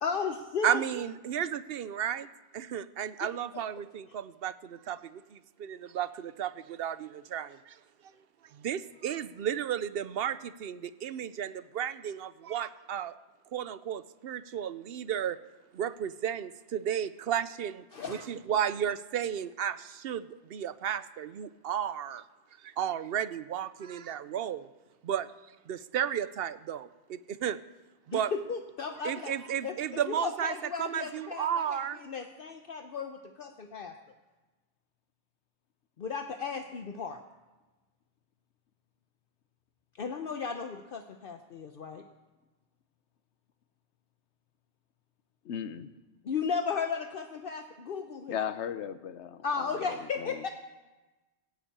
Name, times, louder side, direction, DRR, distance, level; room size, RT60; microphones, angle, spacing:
voice 1, 0.0-0.8 3.2-3.3 17.9-18.3 28.1-29.3 29.6-33.9 36.0-37.2 40.0-42.0 46.2-48.4 49.4-50.5, left 5 dB, 55° left, 6 dB, 0.9 m, -35 dB
voice 2, 0.6-2.3 2.5-7.7 8.5-13.1 13.5-15.4 15.7-20.2 20.5-22.2 22.6-24.7 25.0-25.3 25.7-27.6 28.1-28.3 29.0-30.5 30.8-32.0, right 9 dB, 65° right, 14 dB, 0.8 m, -33 dB
voice 3, 45.4-45.9 48.3-50.4, left 8 dB, 90° left, 13 dB, 1.0 m, -37 dB
16.5 x 8.2 x 8.7 m, 1.2 s
omnidirectional pair, 1.1 m